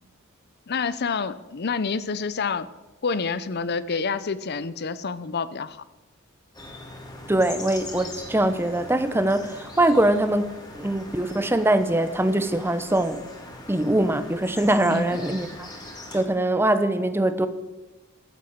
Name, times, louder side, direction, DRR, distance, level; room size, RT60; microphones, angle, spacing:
voice 1, 0.7-2.7 3.0-5.8 14.9-15.2, left 5 dB, 50° left, 15 dB, 0.6 m, -28 dB
sound 1, 6.5-16.2, left 1 dB, 20° left, 2.0 m, -41 dB
voice 2, 7.3-10.5 10.7-13.2 13.7-15.5 16.1-17.5, right 1 dB, 10° right, 11 dB, 0.7 m, -22 dB
14.5 x 7.5 x 7.2 m, 1.1 s
head